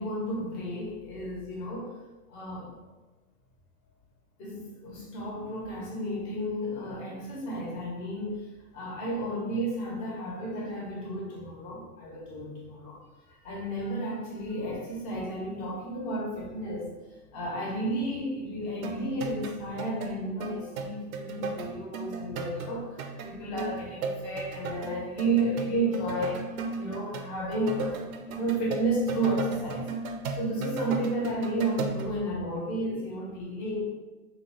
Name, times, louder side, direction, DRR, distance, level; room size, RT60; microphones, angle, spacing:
voice 1, 0.0-1.9 2.3-2.7 4.4-8.4 8.7-13.0 13.3-16.9 17.3-22.9 23.2-29.9 30.3-33.8, right 1 dB, 35° left, -3 dB, 1.1 m, -32 dB
sound 1, 18.8-32.1, right 4 dB, 60° right, 0.5 m, -35 dB
3.2 x 2.9 x 3.0 m, 1.2 s
hypercardioid pair, 130°, 47 cm